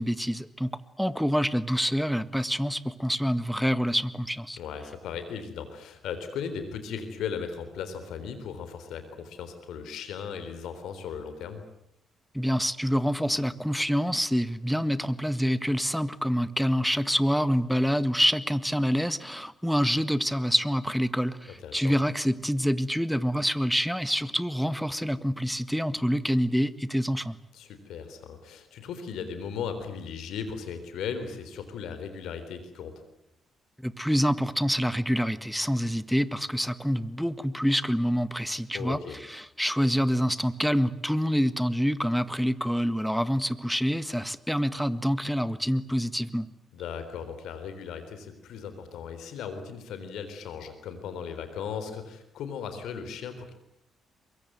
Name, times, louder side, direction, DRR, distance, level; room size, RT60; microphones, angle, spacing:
voice 1, 0.0-4.6 12.3-27.4 33.8-46.5, equal, ahead, 15 dB, 1.6 m, -26 dB
voice 2, 4.6-11.6 21.6-22.0 27.5-32.9 38.7-39.2 46.7-53.5, left 6 dB, 70° left, 9 dB, 3.8 m, -37 dB
24.0 x 22.5 x 9.4 m, 0.80 s
hypercardioid pair, 40°, 0 cm